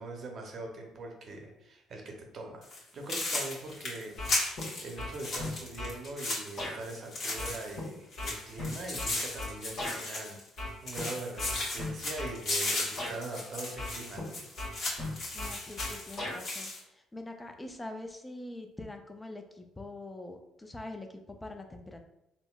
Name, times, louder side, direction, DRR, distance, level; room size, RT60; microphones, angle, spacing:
voice 1, 0.0-4.1 4.5-14.4, right 2 dB, 55° right, 1 dB, 0.7 m, -42 dB
sound 1, 2.6-2.8 3.1-7.8 8.1-10.6 10.9-16.8, left 2 dB, 50° left, 1.2 m, -36 dB
sound 2, 4.2-4.7 5.0-6.0 6.6-6.8 7.4-10.0 10.6-11.0 11.4-12.4 13.0-13.2 13.8-14.3 14.6-16.4, left 1 dB, 65° left, 1.3 m, -37 dB
voice 2, 15.3-22.1, left 2 dB, 15° left, 5 dB, 0.5 m, -44 dB
3.7 x 2.1 x 2.3 m, 0.85 s
hypercardioid pair, 60°, 0 cm